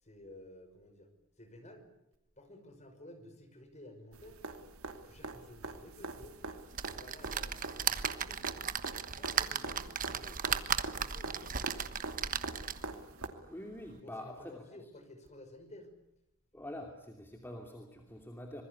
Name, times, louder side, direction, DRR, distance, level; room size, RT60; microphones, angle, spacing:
voice 1, 0.0-1.1 1.4-1.9 2.4-4.4 5.0-6.4 6.9-8.5 9.2-10.7 11.0-11.9 14.0-15.9, left 1 dB, 30° left, 7 dB, 5.8 m, -53 dB
sound 1, 4.1-13.3 15.3-15.4, right 2 dB, 80° right, 2.8 m, -44 dB
sound 2, 6.7-13.0 13.5-13.6 13.9-14.0, right 8 dB, 40° right, 1.3 m, -36 dB
voice 2, 13.5-14.6 16.5-18.6, left 1 dB, 10° left, 3 dB, 2.8 m, -45 dB
26.0 x 21.5 x 9.8 m, 0.83 s
head